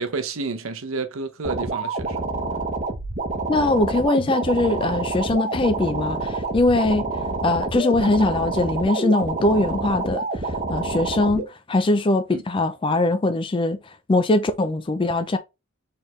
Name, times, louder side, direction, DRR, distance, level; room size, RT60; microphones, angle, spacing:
voice 1, 0.0-2.2 12.3-12.4, right 4 dB, 65° right, 0.7 m, -29 dB
sound 1, 1.4-11.4, right 3 dB, 35° right, 0.9 m, -27 dB
voice 2, 3.5-7.1 7.4-13.8 14.1-15.4, left 2 dB, 25° left, 0.4 m, -21 dB
4.5 x 3.5 x 3.1 m
head